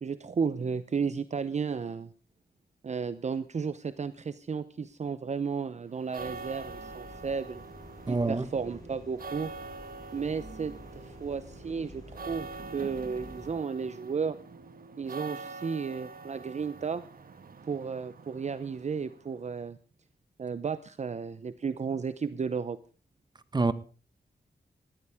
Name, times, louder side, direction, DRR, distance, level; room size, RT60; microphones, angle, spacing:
voice 1, 0.0-2.1 2.8-7.6 8.1-9.5 10.1-14.4 15.0-17.0 17.6-19.8 20.4-22.8, right 5 dB, 45° right, 0.7 m, -33 dB
sound 1, 5.9-19.4, right 4 dB, 65° right, 1.6 m, -45 dB
sound 2, 6.2-13.5, left 1 dB, 20° left, 5.8 m, -50 dB
voice 2, 8.1-8.5 23.5-23.7, right 3 dB, 25° right, 1.1 m, -26 dB
20.0 x 14.0 x 3.5 m
wide cardioid pair, 140°, 16 cm